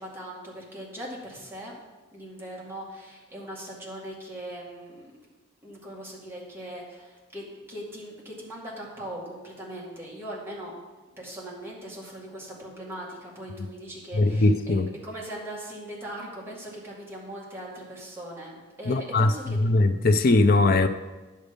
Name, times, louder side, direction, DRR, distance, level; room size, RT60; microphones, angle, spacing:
voice 1, 0.0-1.7 2.1-5.2 5.6-10.7 11.2-19.7, right 1 dB, 10° right, -5 dB, 2.1 m, -40 dB
voice 2, 14.2-14.9 18.9-19.3 19.6-20.9, left 2 dB, 45° left, 7 dB, 0.5 m, -20 dB
10.0 x 6.6 x 5.2 m, 1.2 s
head